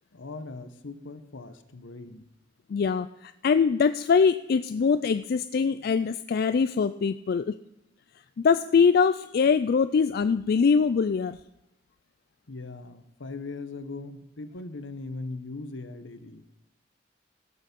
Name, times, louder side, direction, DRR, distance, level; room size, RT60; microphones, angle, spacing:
voice 1, 0.1-2.2 12.5-16.4, left 3 dB, 75° left, 10 dB, 1.0 m, -39 dB
voice 2, 2.7-7.6 8.4-11.4, left 5 dB, 50° left, 11 dB, 0.3 m, -23 dB
17.5 x 6.8 x 5.3 m, 0.86 s
head